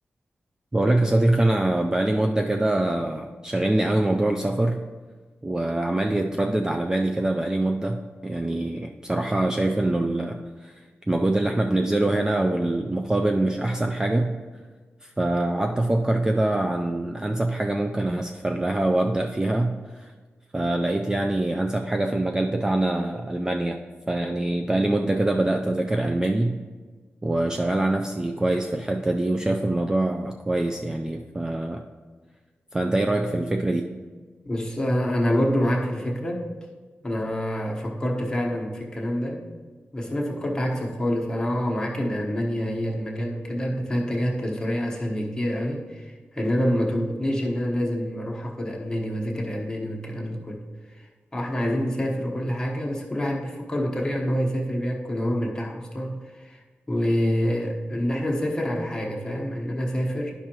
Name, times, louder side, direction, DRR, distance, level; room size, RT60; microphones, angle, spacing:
voice 1, 0.7-4.8 5.4-14.4 15.0-20.1 20.5-23.8 24.1-26.6 27.2-31.8 32.7-33.9, right 1 dB, 15° right, 3 dB, 0.3 m, -24 dB
voice 2, 34.4-36.5 37.0-39.4 39.9-50.6 51.3-56.6 56.9-60.3, equal, 15° left, -2 dB, 1.1 m, -27 dB
10.5 x 5.4 x 2.9 m, 1.4 s
wide cardioid pair, 115°, 4 cm